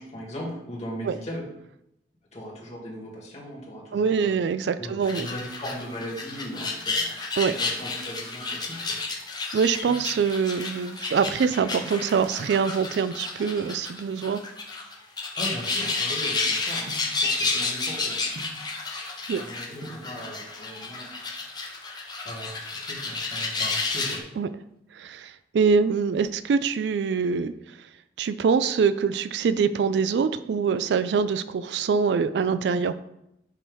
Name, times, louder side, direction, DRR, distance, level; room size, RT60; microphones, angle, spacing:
voice 1, 0.0-1.4 2.3-4.3 4.8-7.2 7.5-9.0 15.4-16.9 17.2-18.2 19.3-21.1 22.2-24.2, equal, 40° left, -3 dB, 2.2 m, -38 dB
voice 2, 3.9-5.3 7.4-7.5 9.5-14.4 19.3-19.4 24.4-24.5 24.9-27.5 28.2-32.9, right 6 dB, 70° right, 12 dB, 0.3 m, -24 dB
sound 1, 5.0-24.2, left 3 dB, 25° left, 0.9 m, -31 dB
sound 2, 9.4-10.3 11.0-11.5 12.8-13.1 13.9-16.3 16.9-17.3 18.4-18.8 19.5-19.6 19.8-20.2 21.3-21.8 22.1-22.2 22.4-22.6 23.0-23.4 23.7-24.7 25.1-25.6 25.9-27.1 27.4-27.5, right 2 dB, 55° right, 0.9 m, -47 dB
7.2 x 2.9 x 5.5 m, 0.82 s
head